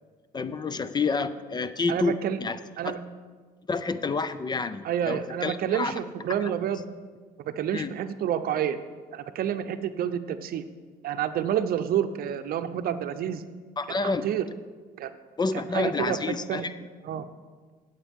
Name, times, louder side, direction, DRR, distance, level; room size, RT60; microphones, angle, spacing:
voice 1, 0.3-2.9 3.7-5.9 6.4-6.5 7.7-7.9 13.8-14.3 15.4-16.7, left 4 dB, 25° left, 13 dB, 0.5 m, -29 dB
voice 2, 1.9-2.4 2.8-3.0 4.8-6.8 7.4-8.8 9.1-10.6 11.0-13.4 14.0-14.4 15.0-15.1 15.7-16.7 17.0-17.3, right 9 dB, 60° right, 10 dB, 0.7 m, -29 dB
16.0 x 8.0 x 3.6 m, 1.5 s
cardioid pair, 110°, 17 cm